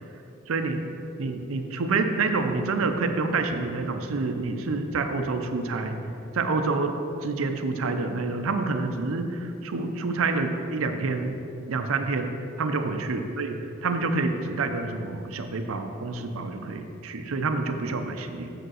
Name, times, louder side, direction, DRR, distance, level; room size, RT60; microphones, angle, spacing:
voice 1, 0.5-0.9 1.2-6.0 6.3-7.0 7.2-11.4 11.7-18.5, right 3 dB, 80° right, 6 dB, 0.6 m, -28 dB
6.7 x 5.1 x 6.3 m, 2.8 s
head